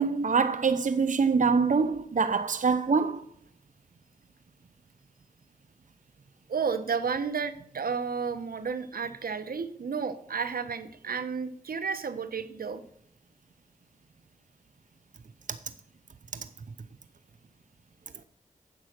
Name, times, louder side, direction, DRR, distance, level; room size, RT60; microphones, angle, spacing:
voice 1, 0.0-3.2, right 5 dB, 60° right, 0.7 m, -24 dB
voice 2, 6.5-12.8, right 5 dB, 85° right, 0.9 m, -32 dB
9.9 x 7.6 x 6.6 m
cardioid pair, 40°, 15 cm